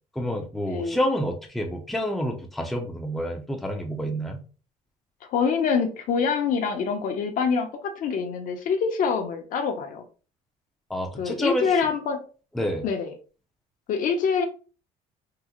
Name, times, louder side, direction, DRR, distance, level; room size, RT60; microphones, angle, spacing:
voice 1, 0.2-4.4 10.9-11.8 12.5-12.8, equal, ahead, 2 dB, 0.5 m, -28 dB
voice 2, 5.3-10.0 11.2-12.2 12.8-13.1 13.9-14.4, left 6 dB, 60° left, 5 dB, 0.7 m, -25 dB
3.7 x 2.0 x 2.9 m, 0.37 s
cardioid pair, 135°, 16 cm